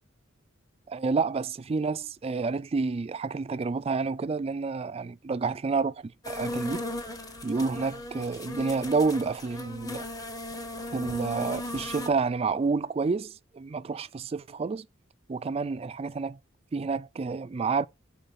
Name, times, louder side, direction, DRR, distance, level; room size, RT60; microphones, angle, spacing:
voice 1, 0.9-6.8 7.4-10.0 10.9-14.9 15.3-16.4 16.7-17.9, right 4 dB, 30° right, 0.3 m, -29 dB
sound 1, 6.2-12.1, left 1 dB, 20° left, 1.0 m, -37 dB
8.9 x 3.8 x 4.1 m
head